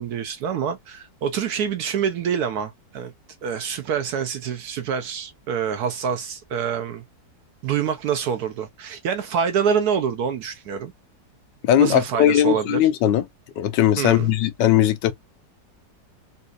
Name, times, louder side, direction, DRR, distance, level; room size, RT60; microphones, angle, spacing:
voice 1, 0.0-3.1 3.4-7.0 7.6-10.9 11.8-12.8 14.0-14.3, right 7 dB, 70° right, 1.0 m, -26 dB
voice 2, 11.6-13.2 13.6-15.1, left 11 dB, 75° left, 1.2 m, -19 dB
4.0 x 2.3 x 2.5 m
omnidirectional pair, 2.0 m